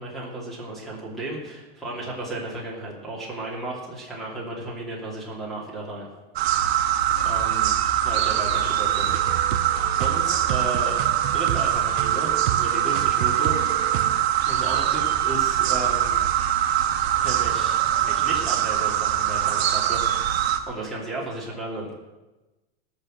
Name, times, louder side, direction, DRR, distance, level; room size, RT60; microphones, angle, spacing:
voice 1, 0.0-6.1 6.6-6.9 7.2-7.7 8.0-9.1 9.4-9.7 10.0-11.0 11.3-13.5 14.4-16.2 17.2-20.3 20.7-21.9, right 2 dB, ahead, -4 dB, 2.8 m, -34 dB
sound 1, 6.4-20.6, right 11 dB, 85° right, 1.5 m, -23 dB
sound 2, 9.1-14.2, right 13 dB, 55° right, 0.8 m, -31 dB
18.0 x 6.6 x 7.9 m, 1.1 s
supercardioid pair, 175°, 31 cm